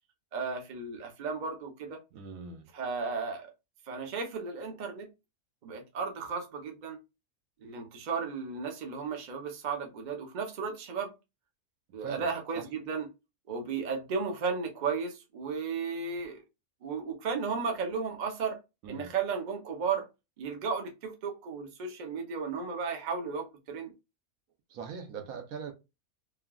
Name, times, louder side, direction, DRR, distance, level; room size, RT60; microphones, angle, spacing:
voice 1, 0.3-2.0 2.7-3.5 3.9-5.1 5.6-7.0 7.6-11.1 11.9-13.1 13.5-16.4 16.8-18.6 18.9-20.1 20.4-23.9, right 5 dB, 45° right, 0.6 m, -34 dB
voice 2, 2.1-2.6 12.0-12.6 18.8-19.1 24.7-25.7, right 6 dB, 75° right, 1.1 m, -41 dB
3.3 x 2.3 x 2.2 m
omnidirectional pair, 1.5 m